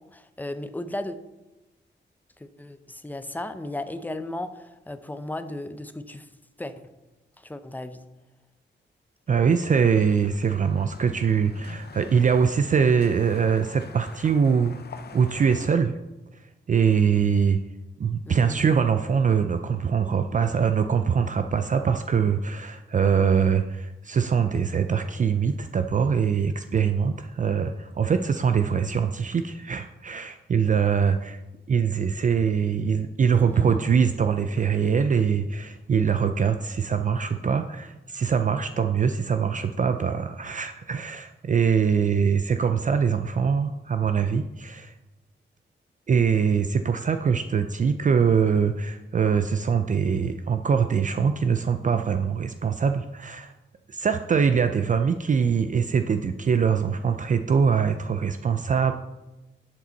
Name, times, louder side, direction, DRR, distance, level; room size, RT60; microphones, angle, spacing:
voice 1, 0.1-1.2 2.4-6.3 6.6-6.9 7.4-8.0 18.3-18.6 33.3-33.9 48.5-48.6, left 1 dB, 10° left, 10 dB, 0.6 m, -35 dB
voice 2, 9.3-14.7 15.1-15.9 16.4-17.6 18.0-31.4 31.7-44.9 46.1-53.5 53.9-58.9, right 6 dB, 40° right, 8 dB, 0.5 m, -23 dB
sound 1, 9.5-15.7, left 6 dB, 55° left, 0.7 m, -46 dB
11.5 x 7.5 x 4.0 m, 1.0 s
wide cardioid pair, 125°, 19 cm